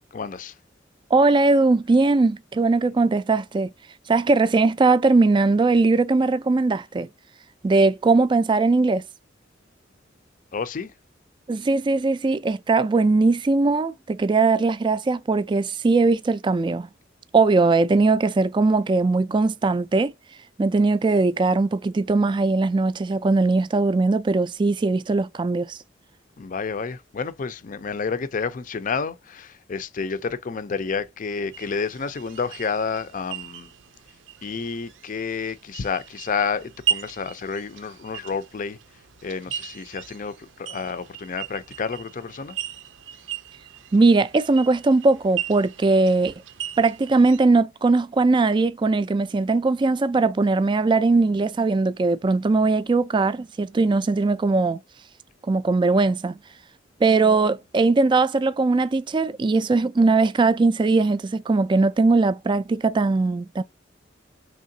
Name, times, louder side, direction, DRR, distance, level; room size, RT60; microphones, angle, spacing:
voice 1, 0.1-0.5 10.5-10.9 26.4-33.7 34.4-38.8 39.2-42.6, left 5 dB, 45° left, 0.5 m, -30 dB
voice 2, 1.1-3.7 4.1-7.1 7.6-9.0 11.5-16.9 17.3-20.1 20.6-25.8 43.9-46.3 46.8-54.8 55.5-56.4 57.0-63.6, right 3 dB, 25° right, 0.3 m, -20 dB
sound 1, 31.5-47.4, right 9 dB, 85° right, 0.5 m, -36 dB
3.6 x 3.2 x 2.7 m
head